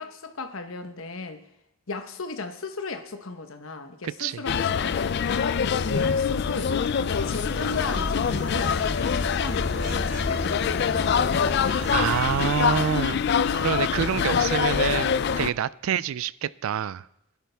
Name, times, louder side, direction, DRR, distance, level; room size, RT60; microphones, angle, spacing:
voice 1, 0.0-1.4 1.9-11.4, left 3 dB, 75° left, 8 dB, 1.1 m, -36 dB
voice 2, 4.0-4.4 11.6-13.2 13.5-17.1, right 8 dB, 80° right, 20 dB, 0.3 m, -27 dB
sound 1, 4.5-15.5, left 7 dB, 55° left, 0.3 m, -25 dB
sound 2, 7.1-12.8, equal, 40° right, 3.1 m, -35 dB
20.5 x 10.5 x 3.5 m, 0.85 s
head